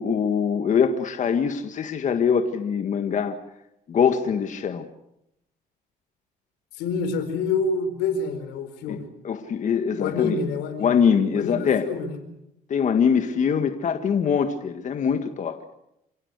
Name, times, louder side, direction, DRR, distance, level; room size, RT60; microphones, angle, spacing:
voice 1, 0.0-3.4 3.9-4.9 8.9-9.0 9.2-10.4 10.8-11.8 12.7-15.7, left 7 dB, 45° left, 7 dB, 1.8 m, -23 dB
voice 2, 6.7-9.1 10.0-11.0 11.3-12.2, left 4 dB, 90° left, 9 dB, 4.5 m, -27 dB
28.0 x 17.5 x 8.2 m, 0.83 s
cardioid pair, 110°, 17 cm